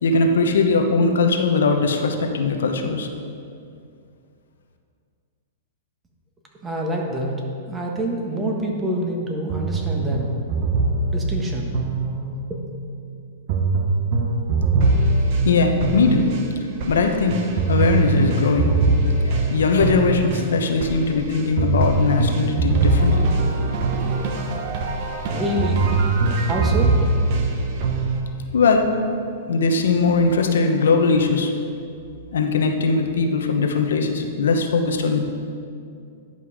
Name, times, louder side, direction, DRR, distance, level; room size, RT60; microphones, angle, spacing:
voice 1, 0.0-3.1 15.4-16.3 16.9-17.4 17.7-18.8 19.0-23.3 28.5-28.9 29.5-31.5 32.3-35.2, left 4 dB, 85° left, 4 dB, 1.0 m, -20 dB
voice 2, 6.6-7.3 7.7-10.2 11.1-11.7 12.1-12.2 12.5-12.6 25.3-25.9 26.3-26.9, equal, 15° right, 0 dB, 1.4 m, -26 dB
sound 1, 9.5-12.6 13.5-28.2, right 3 dB, 50° right, 1.1 m, -22 dB
10.5 x 5.5 x 4.9 m, 2.4 s
hypercardioid pair, 135°, 0 cm